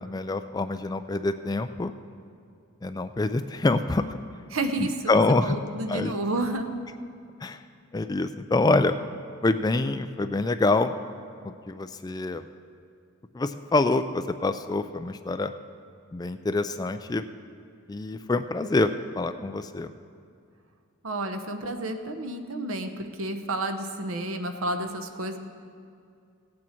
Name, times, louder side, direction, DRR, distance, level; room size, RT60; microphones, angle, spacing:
voice 1, 0.0-1.9 2.8-4.2 4.8-5.6 5.9-6.1 7.4-7.6 7.9-9.0 9.4-10.9 11.4-12.5 13.3-15.5 16.1-17.2 17.9-19.9, left 2 dB, 20° left, 10 dB, 0.3 m, -26 dB
voice 2, 4.5-6.7 21.0-25.4, right 2 dB, 80° right, 7 dB, 0.9 m, -31 dB
16.5 x 8.5 x 4.5 m, 2.4 s
head